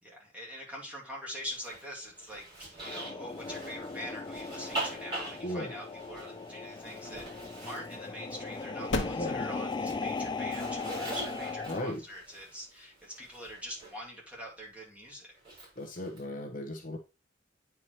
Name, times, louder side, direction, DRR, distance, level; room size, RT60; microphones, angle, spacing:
voice 1, 0.0-15.4, equal, 10° right, -4 dB, 2.4 m, -44 dB
Zipper (clothing), 1.4-9.2 9.5-14.0 15.4-16.2, right 2 dB, 30° right, 4.6 m, -44 dB
sound 1, 2.8-11.9, left 4 dB, 25° left, 0.4 m, -38 dB
voice 2, 5.4-5.7 9.2-9.4 11.7-12.0 15.8-17.0, left 1 dB, 50° left, 3 dB, 1.0 m, -36 dB
sound 2, 8.9-13.6, left 2 dB, 90° left, 1.2 m, -41 dB
9.3 x 4.8 x 3.0 m, 0.29 s
head